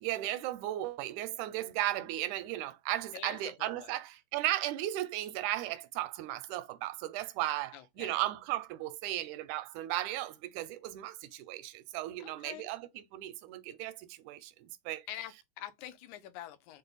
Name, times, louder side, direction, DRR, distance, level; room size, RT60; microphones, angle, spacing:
voice 1, 0.0-15.1, right 14 dB, 85° right, 2.0 m, -36 dB
voice 2, 3.1-4.0 7.7-8.2 12.2-12.7 15.1-16.8, left 12 dB, 85° left, 2.1 m, -46 dB
5.4 x 2.1 x 3.9 m
omnidirectional pair, 3.4 m